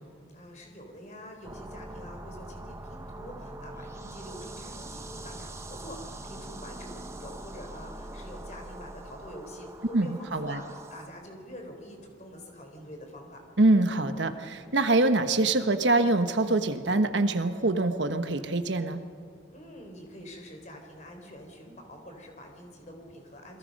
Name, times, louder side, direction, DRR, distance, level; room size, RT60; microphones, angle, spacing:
voice 1, 0.3-13.4 19.5-23.6, equal, 40° left, 3 dB, 4.0 m, -46 dB
sound 1, 1.4-11.1, right 1 dB, 15° right, 0.9 m, -43 dB
voice 2, 9.9-10.6 13.6-19.0, right 2 dB, 70° right, 8 dB, 1.2 m, -24 dB
29.0 x 22.0 x 5.4 m, 2.4 s
head